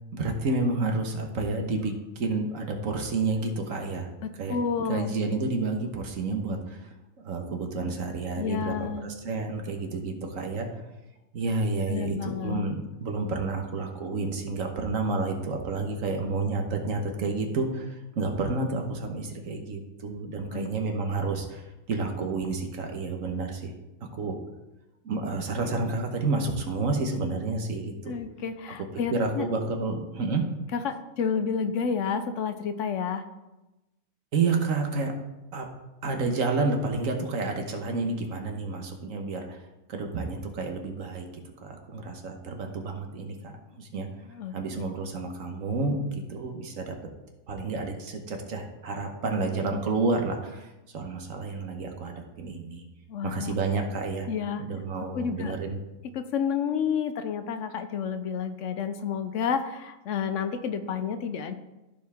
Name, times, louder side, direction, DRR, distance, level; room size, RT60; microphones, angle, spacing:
voice 1, 0.1-4.1 4.4-4.6 4.9-6.9 7.2-10.9 11.3-23.7 24.1-24.4 25.0-28.2 29.1-30.4 34.3-35.1 35.5-35.7 36.0-39.6 39.9-41.2 41.6-44.1 44.5-46.9 47.5-52.8 53.2-54.3 54.6-55.8, right 3 dB, 70° right, 3 dB, 1.5 m, -30 dB
voice 2, 4.2-5.1 8.4-9.1 11.9-12.7 20.5-20.7 28.1-29.5 30.7-33.2 44.3-44.5 53.1-53.5 54.3-54.6 55.1-55.5 56.1-61.5, left 6 dB, 70° left, 9 dB, 0.9 m, -30 dB
14.5 x 4.8 x 3.5 m, 1.0 s
omnidirectional pair, 1.4 m